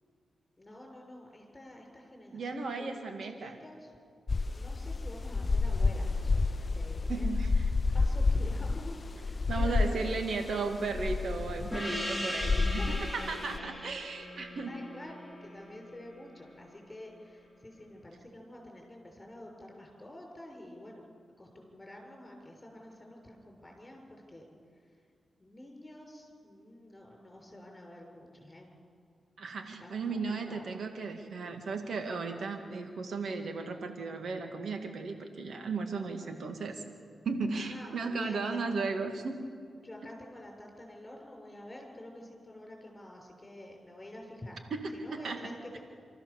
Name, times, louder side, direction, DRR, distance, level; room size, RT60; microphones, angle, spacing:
voice 1, 0.6-3.0 3.4-3.9 4.5-7.3 7.7-10.2 11.6-11.7 12.4-13.2 14.7-21.0 21.4-24.5 24.8-24.9 25.4-28.7 29.8-30.7 37.5-38.4 39.7-44.6 44.9-45.8, left 1 dB, 25° left, 1 dB, 6.6 m, -48 dB
voice 2, 2.3-3.6 7.1-7.7 9.5-12.8 13.1-14.8 29.4-36.8 37.3-39.5 44.7-45.6, right 4 dB, 75° right, 5 dB, 1.9 m, -35 dB
sound 1, 4.3-13.6, left 3 dB, 40° left, 0.5 m, -30 dB
Gong, 11.7-16.7, left 1 dB, 5° right, 3.8 m, -39 dB
27.0 x 14.0 x 7.1 m, 2.3 s
cardioid pair, 65°, 0 cm